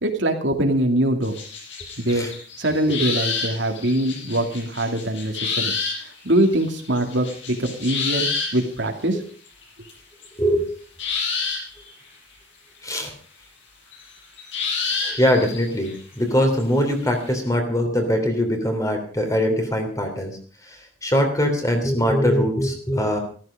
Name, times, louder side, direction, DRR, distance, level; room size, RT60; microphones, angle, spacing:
voice 1, 0.0-1.4 2.0-2.3 2.6-5.7 6.2-9.2, right 1 dB, 65° right, 3 dB, 2.6 m, -23 dB
sound 1, 1.2-8.6 9.6-9.9 10.2-10.3 11.0-11.9 13.9-16.6 17.0-17.1, left 5 dB, 65° left, 7.4 m, -29 dB
voice 2, 12.8-13.1 15.0-20.4 20.6-23.2, equal, 15° left, 4 dB, 3.1 m, -22 dB
14.5 x 14.5 x 5.1 m, 0.43 s
head